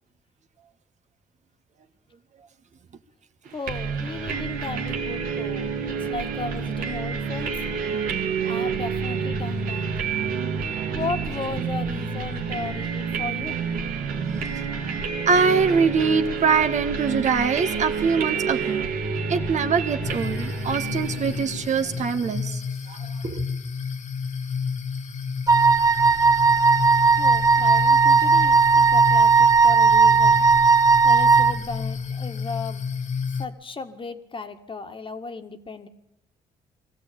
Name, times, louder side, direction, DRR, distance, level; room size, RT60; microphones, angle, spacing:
voice 1, 3.5-7.5 8.4-9.9 10.9-13.5 27.2-30.5 31.0-32.9 33.4-35.9, left 4 dB, 35° left, 7 dB, 1.9 m, -35 dB
sound 1, 3.7-22.3, right 5 dB, 85° right, 2.1 m, -29 dB
voice 2, 15.3-18.9 19.3-22.6 22.9-23.0 23.2-23.4, right 5 dB, 55° right, 8 dB, 1.6 m, -23 dB
sound 2, 20.0-33.5, left 5 dB, 55° left, 1.6 m, -30 dB
Wind instrument woodwind instrument, 25.5-31.6, right 4 dB, 25° right, 0.8 m, -17 dB
22.0 x 14.5 x 8.7 m, 0.87 s
cardioid pair, 75°, 14 cm